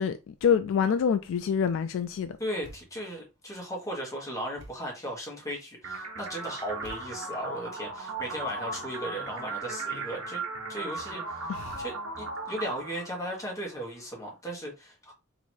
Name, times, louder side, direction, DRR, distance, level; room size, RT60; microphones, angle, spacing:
voice 1, 0.0-2.4 11.5-11.8, left 7 dB, 65° left, 0.3 m, -26 dB
voice 2, 2.4-10.4 10.7-15.1, equal, 15° left, 1.3 m, -36 dB
Thump thud, 2.6-3.2 4.6-5.0 6.8-7.5, equal, 55° right, 1.2 m, -50 dB
sound 1, 5.8-13.8, right 3 dB, 90° right, 1.2 m, -37 dB
3.0 x 2.8 x 4.4 m
head